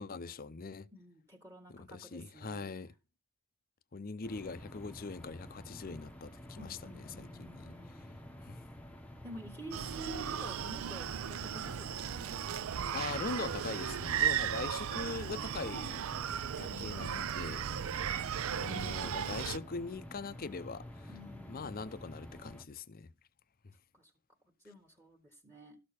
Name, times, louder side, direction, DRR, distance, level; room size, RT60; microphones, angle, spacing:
voice 1, 0.0-0.9 1.7-2.9 3.9-7.8 8.4-8.6 12.9-16.0 16.6-17.7 18.5-21.1 21.5-23.1 23.6-23.7, left 4 dB, 40° left, 0.6 m, -42 dB
voice 2, 0.9-2.7 6.6-8.2 9.2-12.4 21.1-22.0 23.9-24.1 24.5-25.8, right 1 dB, 15° right, 1.4 m, -50 dB
sound 1, 4.2-22.7, left 1 dB, 5° left, 0.8 m, -50 dB
Screaming, 9.7-19.6, right 9 dB, 65° right, 0.4 m, -36 dB
sound 2, 13.8-19.6, right 2 dB, 35° right, 1.2 m, -61 dB
13.0 x 6.6 x 4.3 m
head